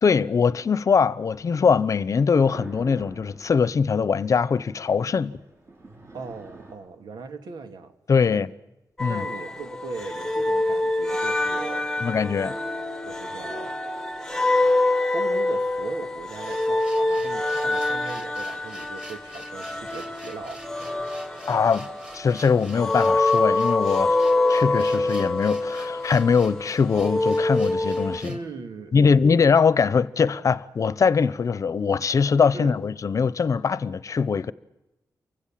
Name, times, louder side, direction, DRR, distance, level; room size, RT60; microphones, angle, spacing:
voice 1, 0.0-5.4 8.1-8.5 9.0-9.2 12.0-12.5 21.5-21.9 22.1-24.2 24.5-28.4 28.9-34.5, left 5 dB, 50° left, 0.9 m, -22 dB
sound 1, 1.3-6.7, right 2 dB, 40° right, 7.9 m, -47 dB
voice 2, 6.1-7.9 8.3-8.5 9.1-12.3 13.0-13.8 15.1-20.6 28.2-29.4 32.5-32.8, right 4 dB, 90° right, 2.4 m, -39 dB
sound 2, 9.0-28.2, left 2 dB, 5° left, 1.4 m, -25 dB
sound 3, 16.4-28.5, right 1 dB, 15° right, 3.6 m, -47 dB
29.0 x 24.5 x 7.6 m
wide cardioid pair, 140°, 7 cm